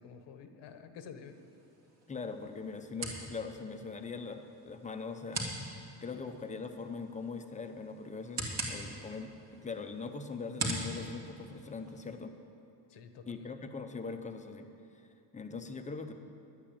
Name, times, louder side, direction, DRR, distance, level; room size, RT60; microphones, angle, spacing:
voice 1, 0.0-1.4 12.9-13.6, left 6 dB, 85° left, 8 dB, 1.1 m, -49 dB
sound 1, 1.2-12.2, right 2 dB, 40° right, 2.2 m, -43 dB
voice 2, 2.1-12.3 13.3-14.7 15.3-16.1, left 4 dB, 20° left, 7 dB, 0.6 m, -41 dB
11.5 x 8.7 x 8.6 m, 2.7 s
cardioid pair, 155°, 41 cm